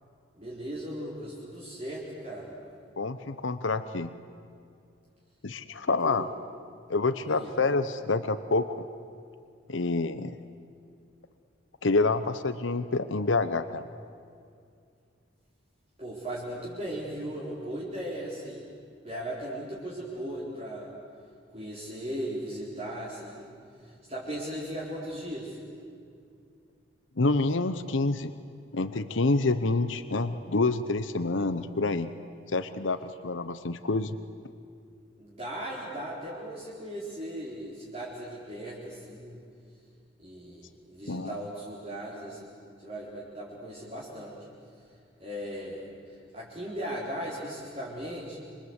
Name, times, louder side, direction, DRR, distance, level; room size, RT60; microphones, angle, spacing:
voice 1, 0.3-2.5 6.0-6.2 7.2-7.5 16.0-18.7 19.0-20.9 21.5-23.5 23.8-25.6 35.2-39.4 40.2-44.5 45.2-48.4, right 1 dB, 30° right, -7 dB, 4.3 m, -38 dB
voice 2, 3.0-4.1 5.4-6.3 6.9-8.8 9.7-10.4 11.8-13.9 27.2-28.3 28.7-32.1 32.5-34.1 41.1-41.4, left 3 dB, 85° left, 11 dB, 0.9 m, -27 dB
27.5 x 24.5 x 8.2 m, 2.4 s
head